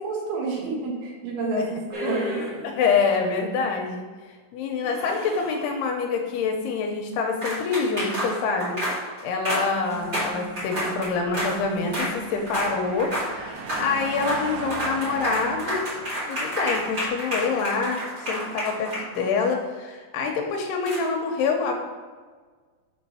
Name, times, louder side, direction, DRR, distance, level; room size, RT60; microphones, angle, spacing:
voice 1, 0.0-2.4, right 3 dB, 70° right, -1 dB, 2.9 m, -29 dB
sound 1, 1.9-2.8 4.8-5.7 7.4-11.6 11.9-12.2 12.5-12.7 13.0-13.3 13.6-13.9 14.2-14.4 14.7-19.5 20.9-21.0, equal, 35° right, 1.1 m, -30 dB
voice 2, 2.6-4.0 4.5-15.8 16.3-21.7, left 4 dB, 80° left, 2 dB, 2.6 m, -26 dB
sound 2, 9.8-15.3, left 2 dB, 55° left, 2.7 m, -43 dB
sound 3, 11.0-17.6, right 4 dB, 85° right, 3.0 m, -39 dB
6.8 x 4.4 x 5.5 m, 1.5 s
omnidirectional pair, 4.9 m